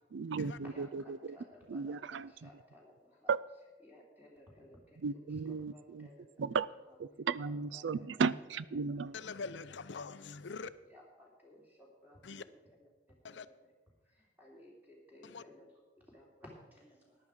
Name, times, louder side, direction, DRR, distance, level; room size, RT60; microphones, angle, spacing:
voice 1, 0.1-1.4 1.7-2.6 3.3-3.4 5.0-6.1 6.4-6.7 7.0-9.1, right 5 dB, 70° right, 0.4 m, -35 dB
voice 2, 0.7-3.3 3.8-5.3 5.7-6.6 7.4-8.2 8.8-9.0 10.9-12.9 13.3-13.5 14.1-15.7 16.0-17.2, left 1 dB, 10° right, 3.1 m, -58 dB
voice 3, 9.1-10.7 12.2-12.4 13.2-13.5 15.2-15.4, left 4 dB, 70° left, 0.6 m, -43 dB
14.0 x 10.5 x 4.8 m
head